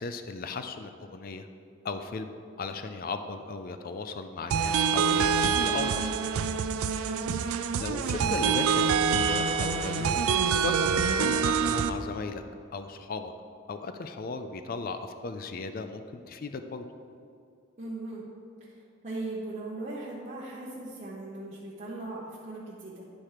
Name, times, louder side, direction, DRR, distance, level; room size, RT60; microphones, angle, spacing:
voice 1, 0.0-1.5 1.8-2.3 2.6-6.1 7.8-10.2 10.6-12.4 12.7-13.3 13.7-16.8, left 4 dB, 40° left, 8 dB, 0.3 m, -36 dB
sound 1, 4.5-11.9, right 6 dB, 85° right, 0.4 m, -26 dB
voice 2, 7.0-7.5 17.8-18.2 18.6-23.1, right 2 dB, 30° right, -7 dB, 0.9 m, -39 dB
10.5 x 4.4 x 4.8 m, 2.4 s
head